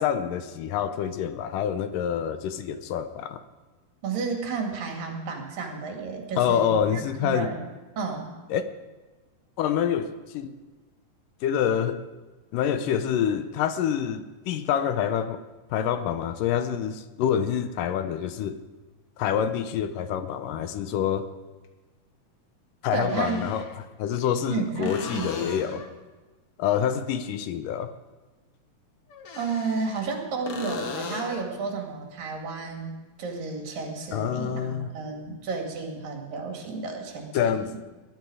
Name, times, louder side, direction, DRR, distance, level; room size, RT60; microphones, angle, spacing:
voice 1, 0.0-3.4 6.4-7.5 8.5-8.6 9.6-10.5 11.4-12.1 12.5-15.4 15.7-18.6 19.2-21.3 22.8-23.6 24.0-25.9 26.6-27.9 34.1-34.9 37.3-37.9, left 9 dB, 80° left, 11 dB, 2.3 m, -27 dB
voice 2, 4.0-7.6 8.0-8.3 22.9-23.6 24.5-25.8 29.4-37.7, right 4 dB, 80° right, 2 dB, 3.9 m, -32 dB
sound 1, 19.5-19.6 21.6-21.7 23.0-23.8 24.8-26.0 29.1-30.2 30.5-31.5 35.2-35.3, left 5 dB, 55° left, 1.8 m, -37 dB
20.5 x 11.5 x 4.9 m, 1.2 s
omnidirectional pair, 3.9 m